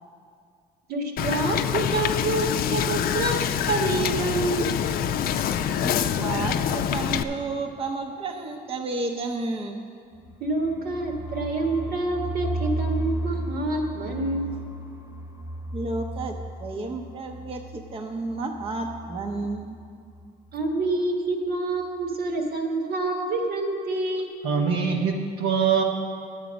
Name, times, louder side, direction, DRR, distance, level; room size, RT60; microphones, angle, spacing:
voice 1, 0.9-4.8 10.4-14.6 20.5-24.4, right 2 dB, 65° right, 3 dB, 1.5 m, -27 dB
Wind / Boat Water vehicle, 1.2-7.2, left 9 dB, 60° left, 0.5 m, -25 dB
voice 2, 5.8-9.8 15.7-19.8, right 3 dB, 35° right, 3 dB, 0.8 m, -32 dB
sound 1, 10.2-19.9 20.1-20.3 20.5-21.0, right 1 dB, 20° right, 1.1 m, -35 dB
voice 3, 24.4-25.8, right 6 dB, 85° right, 1 dB, 1.0 m, -23 dB
11.0 x 8.1 x 5.1 m, 2.2 s
cardioid pair, 110°, 17 cm